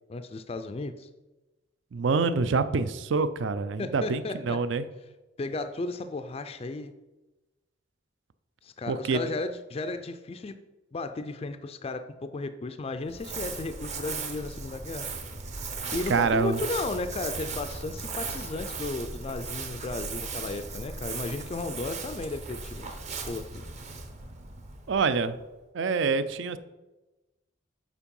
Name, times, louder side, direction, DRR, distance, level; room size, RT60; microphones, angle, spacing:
voice 1, 0.1-1.1 3.8-4.6 5.4-6.9 8.6-10.5 10.9-15.1 15.7-23.0 23.3-23.6, left 3 dB, 30° left, 9 dB, 0.3 m, -34 dB
voice 2, 1.9-4.9 8.9-9.3 16.1-16.6 24.9-25.4 25.7-26.6, right 4 dB, 60° right, 13 dB, 0.4 m, -26 dB
Crumpling crinkling, 13.0-25.5, right 4 dB, 35° right, 0.8 m, -37 dB
7.2 x 4.5 x 5.3 m, 1.1 s
head